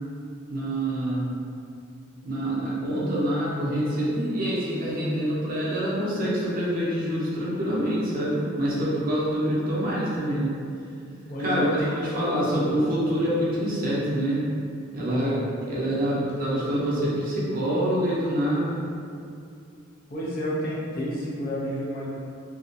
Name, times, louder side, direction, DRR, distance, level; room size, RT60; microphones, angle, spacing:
voice 1, 0.5-1.3 2.2-10.5 11.4-14.5 14.9-15.4 15.7-18.9, right 1 dB, 45° right, -7 dB, 0.6 m, -26 dB
voice 2, 11.3-12.7 15.2-15.4 20.1-22.1, equal, 45° left, -7 dB, 0.5 m, -30 dB
2.3 x 2.0 x 2.6 m, 2.4 s
head